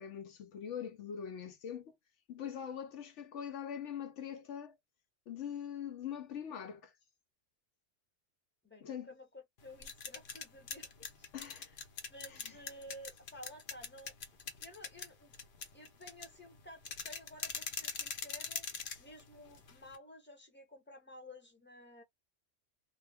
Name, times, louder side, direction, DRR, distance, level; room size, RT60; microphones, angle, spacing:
voice 1, 0.0-2.0 2.3-4.7 5.3-6.9 8.8-9.1 11.3-11.7 12.3-12.5, left 8 dB, 75° left, 0.9 m, -43 dB
voice 2, 8.6-11.8 12.1-14.1 14.6-15.3 15.7-18.7 19.0-22.0, left 1 dB, 10° left, 0.8 m, -53 dB
sound 1, 9.6-20.0, left 6 dB, 50° left, 0.8 m, -44 dB
2.3 x 2.2 x 3.2 m
omnidirectional pair, 1.3 m